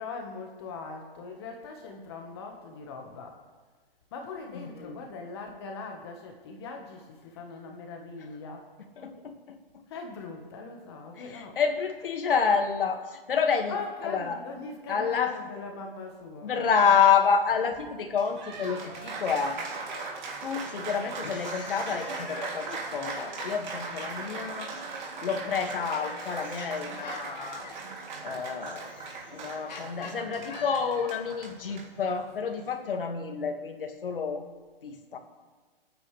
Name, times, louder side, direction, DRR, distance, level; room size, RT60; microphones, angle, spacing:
voice 1, 0.0-3.4 4.1-8.7 9.9-11.6 13.7-16.9, left 4 dB, 25° left, 3 dB, 1.4 m, -41 dB
voice 2, 4.5-5.0 9.0-9.8 11.2-13.7 14.0-14.4 14.9-15.4 16.4-19.8 20.4-24.8 25.2-27.7 28.2-28.9 29.3-34.4 34.8-35.2, left 6 dB, 65° left, 5 dB, 2.0 m, -28 dB
Applause, 18.0-32.7, right 4 dB, 50° right, 2.9 m, -39 dB
sound 1, 21.1-24.4 25.4-31.3, left 5 dB, 45° left, 1.9 m, -46 dB
26.0 x 9.4 x 3.4 m, 1.4 s
hypercardioid pair, 165°, 29 cm